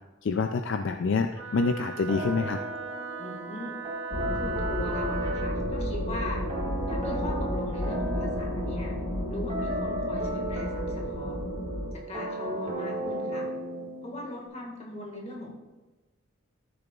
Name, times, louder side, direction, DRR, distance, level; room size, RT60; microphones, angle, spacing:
voice 1, 0.2-2.6, left 4 dB, 55° left, 6 dB, 0.4 m, -27 dB
Wind instrument woodwind instrument, 1.3-5.5, right 8 dB, 55° right, 0.9 m, -39 dB
sound 1, 2.1-14.5, right 1 dB, 30° right, 1.8 m, -35 dB
voice 2, 3.2-3.7 4.4-6.5 6.9-9.0 9.3-11.3 12.1-13.5 14.0-15.5, left 1 dB, 30° left, -1 dB, 1.8 m, -39 dB
sound 2, 4.1-11.9, left 1 dB, 80° left, 1.1 m, -32 dB
14.0 x 6.7 x 2.4 m, 1.2 s
head